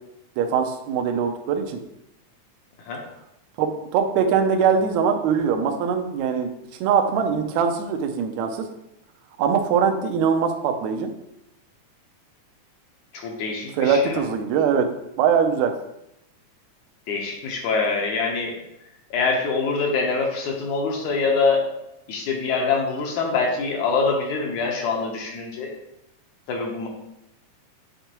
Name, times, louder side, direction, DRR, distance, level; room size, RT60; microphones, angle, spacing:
voice 1, 0.4-1.8 3.6-6.5 6.8-8.5 9.4-11.1 13.8-14.9 15.2-15.7, right 6 dB, 75° right, 5 dB, 1.8 m, -22 dB
voice 2, 13.1-14.2 17.1-18.6 19.1-21.7 22.1-25.7 26.5-26.9, left 4 dB, 70° left, 0 dB, 2.2 m, -24 dB
8.0 x 4.5 x 2.9 m, 0.84 s
omnidirectional pair, 3.7 m